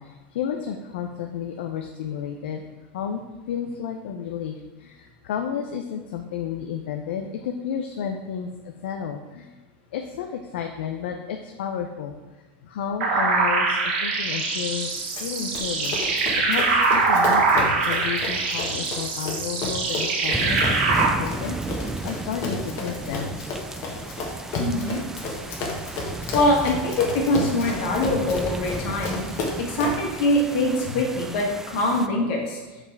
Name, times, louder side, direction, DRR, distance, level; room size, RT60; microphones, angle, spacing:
voice 1, 0.0-2.6 2.9-9.5 9.9-12.1 12.6-14.9 15.2-16.0 16.5-21.6 22.0-23.4, left 8 dB, 80° left, 4 dB, 0.6 m, -32 dB
sound 1, 13.0-21.1, right 3 dB, 80° right, 1.5 m, -23 dB
Run, 15.2-30.1, left 2 dB, 50° left, 1.5 m, -33 dB
sound 2, 20.3-32.1, right 3 dB, 10° right, 0.3 m, -34 dB
voice 2, 24.6-25.0 26.3-32.6, left 1 dB, 65° left, -1 dB, 1.9 m, -23 dB
5.4 x 5.0 x 4.6 m, 1.2 s
supercardioid pair, 130°, 6 cm